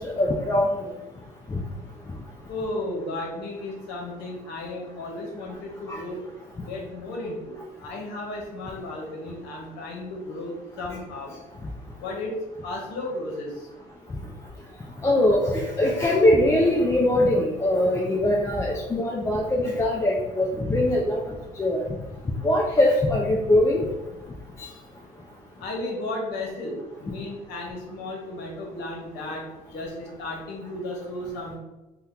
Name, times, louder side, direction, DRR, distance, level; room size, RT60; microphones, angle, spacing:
voice 1, 0.2-0.7 1.5-1.6 5.9-6.0 15.0-21.8 22.4-23.9, left 1 dB, 15° left, -2 dB, 0.4 m, -22 dB
voice 2, 2.5-6.2 6.7-11.4 12.0-12.3 12.6-13.7 25.6-31.5, left 2 dB, 85° left, 0 dB, 0.9 m, -34 dB
2.8 x 2.2 x 3.6 m, 1.1 s
cardioid pair, 110°, 17 cm